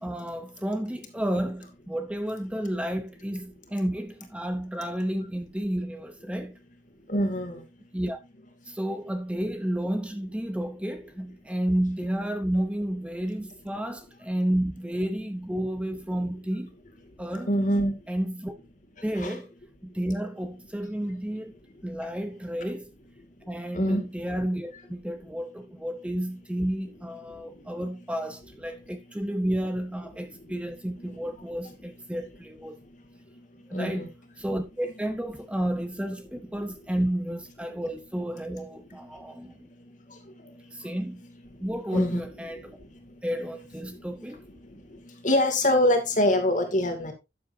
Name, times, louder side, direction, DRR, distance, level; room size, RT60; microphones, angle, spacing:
voice 1, 0.0-6.6 7.9-8.2 8.7-16.7 17.2-17.5 18.1-18.5 19.0-19.5 19.8-21.5 21.8-22.9 23.5-32.8 33.7-34.1 34.4-39.7 40.7-41.2 41.6-42.8 43.2-44.4, right 1 dB, 5° right, 0.8 m, -31 dB
voice 2, 7.1-7.6 17.5-17.9 19.2-19.4 23.7-24.0 33.7-34.1 41.9-42.2 45.2-47.1, left 1 dB, 45° left, 2.5 m, -24 dB
12.0 x 7.7 x 2.8 m
head